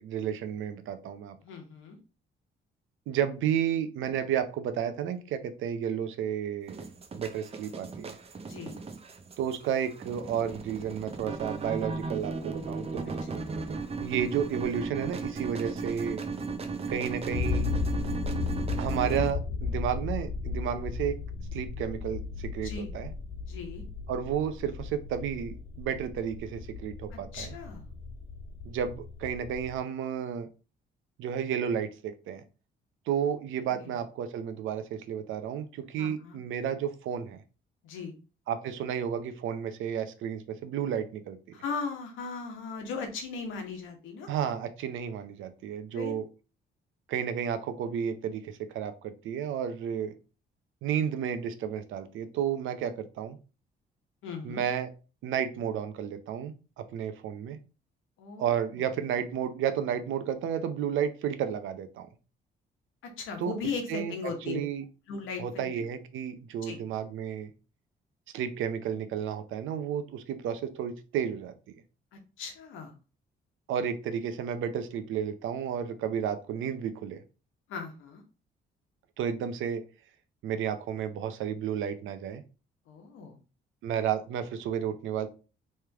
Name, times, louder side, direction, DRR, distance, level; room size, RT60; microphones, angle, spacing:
voice 1, 0.0-1.4 3.1-6.8 7.1-8.2 9.4-13.2 14.0-16.2 16.9-17.7 18.8-21.2 21.5-23.1 24.1-27.5 28.7-30.5 31.2-32.4 33.1-37.4 38.5-41.4 44.3-46.3 47.1-50.1 50.8-53.4 54.4-54.9 55.2-57.6 58.4-62.1 63.4-63.5 63.9-64.8 65.4-67.5 68.3-71.5 73.7-77.2 79.2-79.9 80.4-82.4 83.8-85.3, right 8 dB, 80° right, 10 dB, 0.6 m, -32 dB
voice 2, 1.4-2.0 8.5-8.8 13.3-13.5 22.6-22.9 23.5-23.8 27.1-27.9 33.7-33.9 36.0-36.4 37.8-38.1 41.5-44.3 45.9-46.1 54.2-54.6 58.2-58.5 63.2-64.6 65.1-65.7 66.7-66.8 72.4-72.9 77.7-78.2 82.9-83.4, left 5 dB, 85° left, 4 dB, 1.1 m, -37 dB
sound 1, 6.7-19.3, right 4 dB, 30° right, 0.6 m, -36 dB
sound 2, 10.8-29.8, left 4 dB, 50° left, 1.5 m, -36 dB
3.2 x 3.2 x 3.4 m, 0.33 s
cardioid pair, 90°, 20 cm